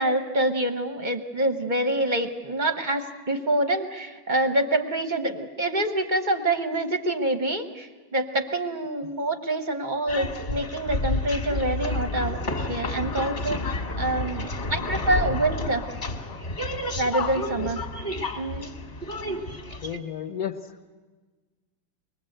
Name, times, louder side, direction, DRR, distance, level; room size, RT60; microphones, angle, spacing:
voice 1, 0.0-15.8 17.0-17.8 18.4-18.7, right 1 dB, 35° right, 7 dB, 0.7 m, -26 dB
sound 1, 10.1-20.0, left 2 dB, 30° left, 1.7 m, -30 dB
voice 2, 19.8-20.9, left 9 dB, 50° left, 4 dB, 1.5 m, -33 dB
24.0 x 20.5 x 7.9 m, 1.3 s
omnidirectional pair, 2.3 m